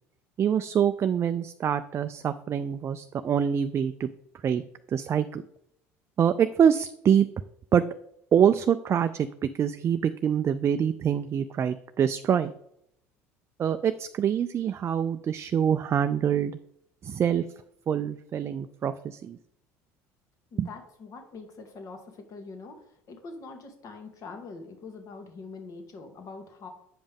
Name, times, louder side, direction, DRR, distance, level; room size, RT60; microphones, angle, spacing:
voice 1, 0.4-4.1 4.4-4.6 4.9-5.4 6.2-7.3 7.7-7.8 8.3-12.5 13.6-16.6 17.0-17.4 17.9-19.4 20.6-20.7, right 8 dB, 35° right, 10 dB, 0.3 m, -25 dB
voice 2, 20.5-26.7, left 4 dB, 50° left, 4 dB, 1.6 m, -44 dB
7.8 x 5.2 x 3.5 m, 0.74 s
hypercardioid pair, 70°, 7 cm